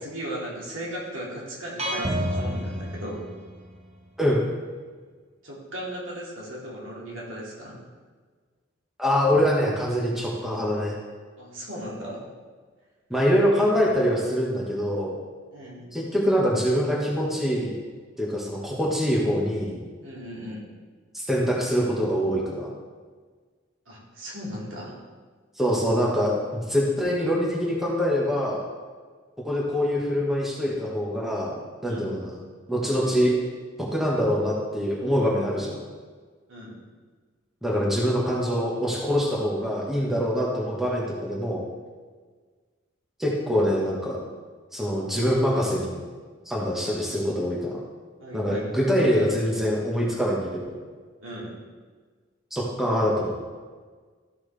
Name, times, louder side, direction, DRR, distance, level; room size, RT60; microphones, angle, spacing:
voice 1, 0.0-3.3 5.4-7.8 11.4-12.2 15.5-15.8 20.0-20.6 23.9-24.9 31.8-32.1 36.5-36.8 48.2-48.6 51.2-51.6, equal, 80° right, -5 dB, 2.7 m, -37 dB
sound 1, 1.8-3.8, equal, 30° right, 0.8 m, -29 dB
voice 2, 9.0-10.9 13.1-15.2 15.9-17.7 18.2-19.8 21.1-22.7 25.6-28.6 29.4-31.5 31.8-32.4 32.7-33.4 33.8-35.8 37.6-41.6 43.2-44.2 44.7-46.0 46.5-47.7 48.3-50.8 52.5-53.3, equal, ahead, -4 dB, 1.4 m, -24 dB
13.5 x 5.9 x 3.4 m, 1.5 s
head